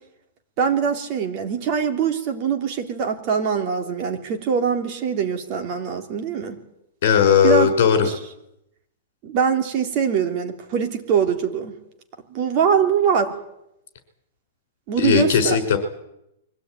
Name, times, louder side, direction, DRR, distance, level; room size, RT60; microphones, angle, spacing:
voice 1, 0.6-6.5 7.4-7.7 8.0-8.2 9.2-11.7 12.3-13.3 14.9-15.6, right 7 dB, 35° right, 5 dB, 2.9 m, -23 dB
voice 2, 7.0-8.1 15.0-15.8, left 7 dB, 55° left, 9 dB, 5.3 m, -17 dB
23.5 x 17.0 x 9.4 m, 0.83 s
hypercardioid pair, 165°, 0 cm